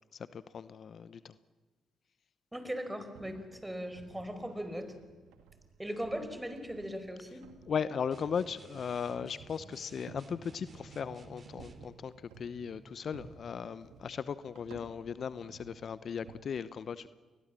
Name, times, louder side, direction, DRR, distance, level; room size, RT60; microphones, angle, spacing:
voice 1, 0.1-1.4 7.7-17.1, left 7 dB, 55° left, 15 dB, 0.8 m, -37 dB
voice 2, 2.5-4.9 5.8-7.5, equal, 10° right, 9 dB, 4.8 m, -39 dB
sound 1, 3.1-16.4, right 5 dB, 80° right, 2.1 m, -56 dB
sound 2, 8.1-11.9, right 4 dB, 45° right, 2.8 m, -54 dB
29.5 x 21.0 x 7.6 m, 1.3 s
hypercardioid pair, 50°, 0 cm